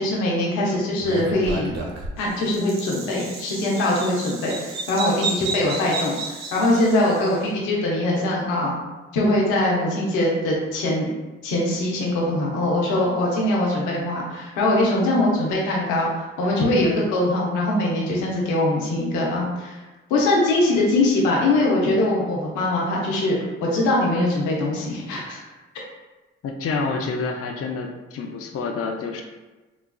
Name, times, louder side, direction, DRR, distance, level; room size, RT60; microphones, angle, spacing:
voice 1, 0.0-1.7 2.2-8.8 9.1-11.1 11.4-16.1 16.4-19.8 20.1-25.4, left 1 dB, 90° left, -3 dB, 0.7 m, -22 dB
Bird vocalization bird call bird song, 1.0-7.3, right 3 dB, 65° right, 0.7 m, -32 dB
voice 2, 26.4-29.2, left 4 dB, 50° left, 2 dB, 0.5 m, -28 dB
3.9 x 2.3 x 2.2 m, 1.2 s
hypercardioid pair, 40°, 29 cm